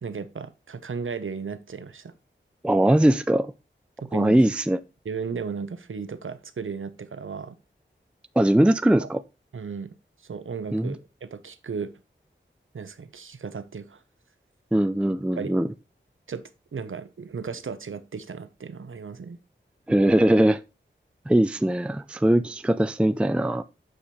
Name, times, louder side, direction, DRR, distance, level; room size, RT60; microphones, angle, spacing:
voice 1, 0.0-2.1 4.0-4.4 5.0-7.6 9.0-9.1 9.5-9.9 10.2-11.9 12.7-14.0 15.4-15.6 16.3-16.4 16.7-19.4, right 5 dB, 85° right, 0.8 m, -35 dB
voice 2, 2.6-3.5 4.1-4.8 8.4-9.2 10.7-11.0 14.7-15.7 19.9-20.6 21.3-23.6, right 1 dB, 5° right, 0.4 m, -21 dB
7.7 x 5.0 x 4.2 m
wide cardioid pair, 55°, 20 cm